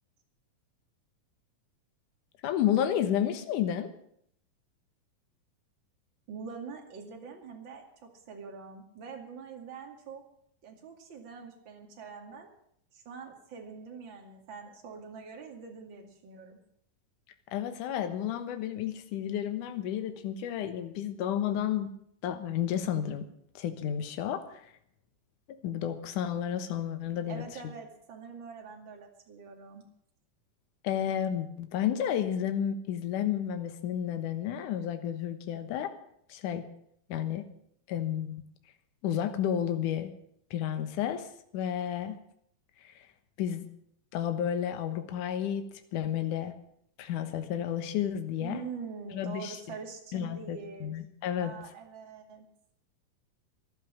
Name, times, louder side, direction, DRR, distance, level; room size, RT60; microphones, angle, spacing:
voice 1, 2.4-3.9 17.5-21.9 22.2-23.3 23.6-24.6 25.6-27.4 30.8-35.9 36.3-36.6 37.1-37.4 37.9-38.4 39.0-40.1 40.5-41.3 41.5-42.2 42.8-42.9 43.4-43.7 44.1-45.6 45.9-46.5 47.0-48.6 49.1-49.6 50.1-51.5, left 10 dB, 65° left, 8 dB, 2.6 m, -31 dB
voice 2, 6.3-10.2 10.6-12.5 12.9-16.6 27.3-29.8 48.4-51.0 51.4-52.5, right 5 dB, 35° right, 2 dB, 2.6 m, -44 dB
14.5 x 11.5 x 7.5 m, 0.69 s
omnidirectional pair, 4.2 m